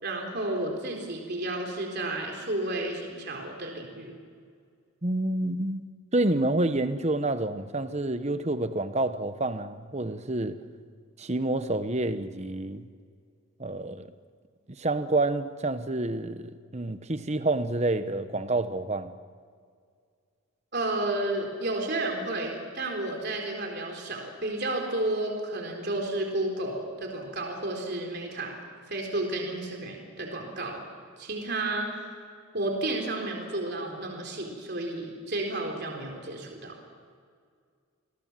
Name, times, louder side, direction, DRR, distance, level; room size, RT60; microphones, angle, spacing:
voice 1, 0.0-4.1 20.7-28.6 28.9-30.8 31.2-31.9 32.5-36.8, right 2 dB, 50° right, 1 dB, 4.0 m, -32 dB
voice 2, 5.0-10.6 11.2-12.9 13.6-14.1 14.7-19.1, right 2 dB, 30° right, 11 dB, 1.0 m, -28 dB
28.0 x 20.5 x 7.5 m, 2.1 s
head